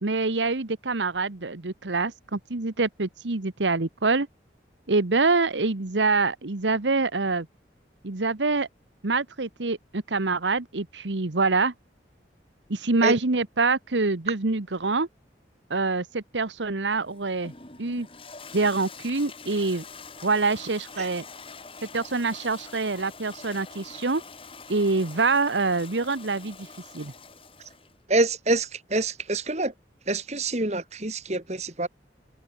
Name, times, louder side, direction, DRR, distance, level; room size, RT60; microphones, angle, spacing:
voice 1, 0.0-4.3 4.9-7.5 8.0-8.7 9.0-11.7 12.7-15.1 15.7-17.5 17.8-18.1 18.5-19.8 20.2-21.2 21.9-24.2 24.7-26.7 26.9-27.1, right 3 dB, 90° right, 1.3 m, -25 dB
Toilet flush, 16.9-28.0, left 4 dB, 30° left, 5.9 m, -45 dB
voice 2, 28.1-29.7 30.1-31.9, right 2 dB, 40° right, 2.5 m, -26 dB
head